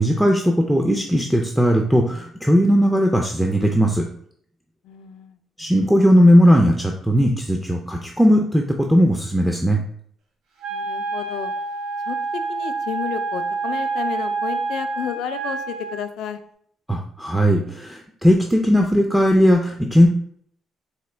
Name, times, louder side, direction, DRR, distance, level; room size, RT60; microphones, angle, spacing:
voice 1, 0.0-4.0 5.6-9.8 16.9-20.1, equal, ahead, 1 dB, 0.4 m, -17 dB
voice 2, 4.8-5.4 10.7-11.5 12.1-16.4, left 9 dB, 80° left, 9 dB, 0.3 m, -32 dB
Wind instrument woodwind instrument, 10.6-16.0, right 4 dB, 85° right, 0.6 m, -27 dB
4.2 x 2.1 x 3.2 m, 0.63 s
cardioid pair, 90°, 0 cm